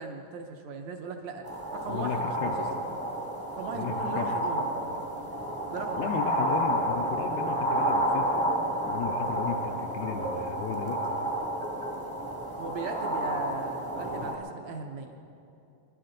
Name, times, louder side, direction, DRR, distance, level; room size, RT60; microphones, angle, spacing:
voice 1, 0.0-2.7 3.6-4.7 5.7-6.1 12.6-15.2, right 5 dB, 75° right, 4 dB, 1.6 m, -38 dB
sound 1, 1.4-14.3, right 1 dB, 25° right, 0.5 m, -30 dB
voice 2, 1.9-2.6 3.7-4.3 6.0-8.3 8.9-11.0, left 8 dB, 85° left, 2 dB, 2.5 m, -34 dB
27.0 x 11.5 x 3.9 m, 2.7 s
omnidirectional pair, 4.3 m